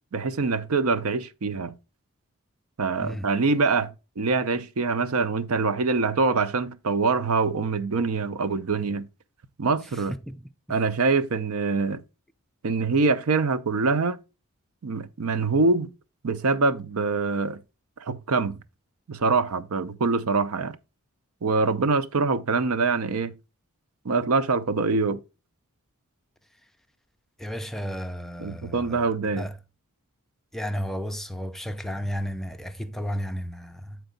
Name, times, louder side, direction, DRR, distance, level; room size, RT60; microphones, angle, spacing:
voice 1, 0.1-1.7 2.8-9.1 9.6-10.1 10.7-12.0 12.6-14.2 14.8-15.9 16.2-17.6 18.0-18.6 19.1-20.8 21.4-23.3 24.0-25.2 28.4-29.5, right 4 dB, 70° right, 0.5 m, -24 dB
voice 2, 3.0-3.3 9.9-10.4 27.4-29.6 30.5-34.0, equal, ahead, 0.5 m, -33 dB
8.0 x 4.6 x 3.8 m
head